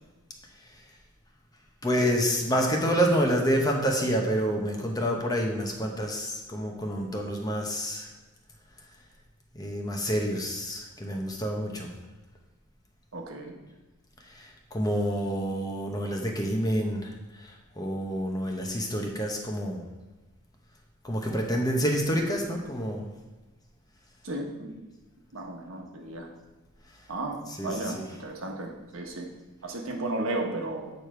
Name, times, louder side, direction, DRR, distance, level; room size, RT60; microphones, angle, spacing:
voice 1, 1.8-8.1 9.5-11.9 14.3-19.8 21.0-23.1 27.6-28.0, equal, 15° left, 1 dB, 0.9 m, -28 dB
voice 2, 13.1-13.6 24.2-24.8 25.3-26.3 27.1-29.3 29.6-30.9, right 2 dB, 70° right, 1 dB, 1.2 m, -34 dB
8.5 x 4.9 x 4.5 m, 1.2 s
head